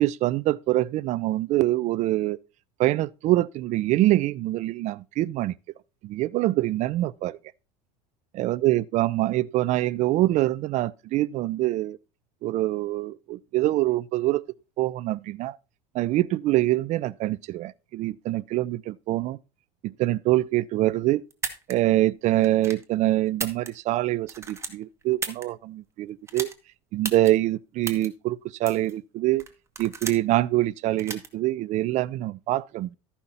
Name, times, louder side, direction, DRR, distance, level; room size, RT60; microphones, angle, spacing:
voice 1, 0.0-2.4 2.8-5.5 6.0-7.4 8.3-12.0 12.4-14.4 14.8-15.6 15.9-19.4 19.8-21.2 21.7-26.5 26.9-29.4 29.8-33.0, right 16 dB, 50° right, 0.5 m, -25 dB
sound 1, 21.3-21.7 22.4-22.8 23.3-24.0 24.3-25.4 26.3-26.5 27.0-27.3 27.8-28.1 28.7-28.9 29.4-30.3 31.0-31.3, right 4 dB, 20° right, 1.7 m, -34 dB
13.5 x 5.7 x 4.2 m
supercardioid pair, 110°, 15 cm